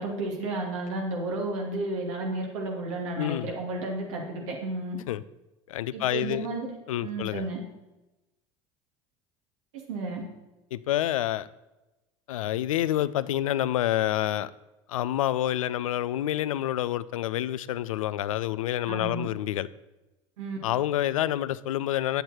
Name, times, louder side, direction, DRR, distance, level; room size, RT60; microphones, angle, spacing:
voice 1, 0.0-5.0 5.9-6.8 7.0-7.6 9.9-10.2 18.9-19.3 20.4-20.6, right 2 dB, 80° right, 2.5 m, -32 dB
voice 2, 3.2-3.5 5.1-5.2 5.7-6.5 6.9-7.4 10.7-11.5 12.3-14.5 14.9-19.7 20.6-22.2, left 13 dB, 85° left, 0.4 m, -28 dB
9.1 x 8.0 x 4.4 m
hypercardioid pair, 80°, 17 cm